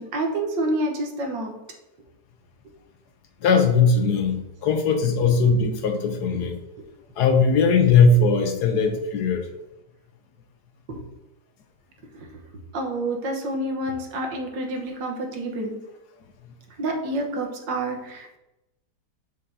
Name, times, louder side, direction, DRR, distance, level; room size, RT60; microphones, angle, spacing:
voice 1, 0.0-1.6 6.3-6.5 12.1-12.3 12.7-15.8 16.8-18.4, right 1 dB, 90° right, 2 dB, 1.8 m, -28 dB
voice 2, 3.4-6.6 7.2-9.5, left 4 dB, 70° left, 6 dB, 1.3 m, -19 dB
6.8 x 6.8 x 2.7 m, 0.92 s
omnidirectional pair, 1.9 m